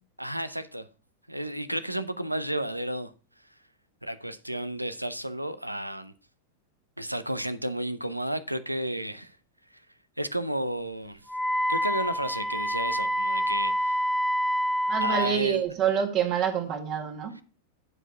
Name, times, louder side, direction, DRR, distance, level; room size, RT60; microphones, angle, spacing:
voice 1, 0.2-0.9 1.3-3.1 4.0-6.1 7.0-9.4 10.2-11.3 11.7-14.1 15.0-15.6 17.4-17.5, right 1 dB, 90° right, 0.6 m, -32 dB
Wind instrument woodwind instrument, 11.3-15.3, equal, ahead, 0.6 m, -27 dB
voice 2, 14.9-17.3, right 8 dB, 35° right, 1.7 m, -27 dB
9.8 x 4.9 x 4.6 m
figure-of-eight pair, 90°, 0 cm